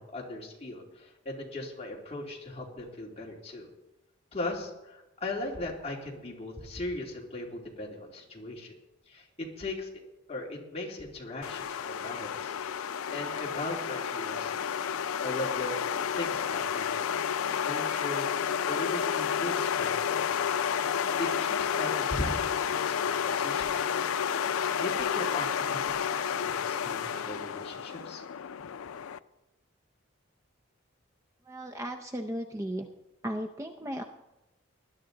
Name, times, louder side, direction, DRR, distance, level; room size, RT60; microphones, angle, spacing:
voice 1, 0.0-3.7 4.3-8.7 9.1-9.9 10.3-12.5 13.1-14.7 15.2-17.1 17.6-18.3 18.6-20.5 21.2-24.1 24.5-28.2, left 2 dB, 30° left, -2 dB, 2.5 m, -38 dB
sound 1, 11.4-29.2, left 8 dB, 85° left, 0.5 m, -31 dB
voice 2, 31.4-32.9 33.2-34.0, equal, 15° right, 6 dB, 0.5 m, -35 dB
19.5 x 11.0 x 3.9 m, 0.97 s
head